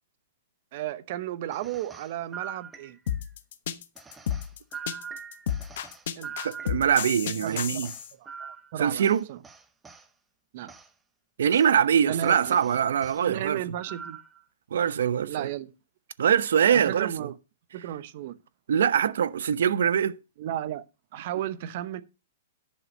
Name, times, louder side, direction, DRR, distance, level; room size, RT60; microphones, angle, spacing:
voice 1, 0.7-3.0 6.2-6.5 7.4-7.9 8.2-9.4 10.5-10.7 12.0-12.8 13.2-14.2 15.3-15.7 16.7-17.3 17.7-18.3 20.4-20.8 21.1-22.0, right 12 dB, 45° right, 0.9 m, -34 dB
sound 1, 1.5-3.3 3.9-7.1 7.4-10.1 10.7-10.9 11.5-11.7 12.1-13.2 13.8-14.4, right 6 dB, 10° right, 0.9 m, -43 dB
sound 2, 3.1-8.1, left 9 dB, 55° left, 1.2 m, -31 dB
voice 2, 6.4-7.9 8.8-9.2 11.4-13.6 14.7-15.5 16.2-17.3 18.7-20.2, right 8 dB, 80° right, 0.8 m, -23 dB
11.0 x 5.6 x 6.5 m
hypercardioid pair, 170°, 0 cm